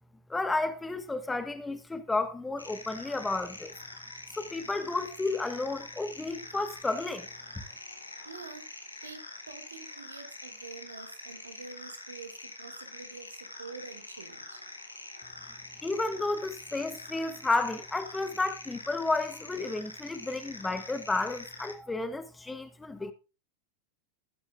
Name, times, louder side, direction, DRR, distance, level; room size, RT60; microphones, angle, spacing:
voice 1, 0.3-3.7 4.3-7.3 15.8-23.1, left 3 dB, 10° left, 1.2 m, -32 dB
sound 1, 2.6-21.7, left 2 dB, 80° left, 1.6 m, -45 dB
voice 2, 8.3-8.7 9.0-14.6, right 5 dB, 70° right, 1.8 m, -47 dB
16.0 x 8.7 x 2.4 m
figure-of-eight pair, 90°, 0 cm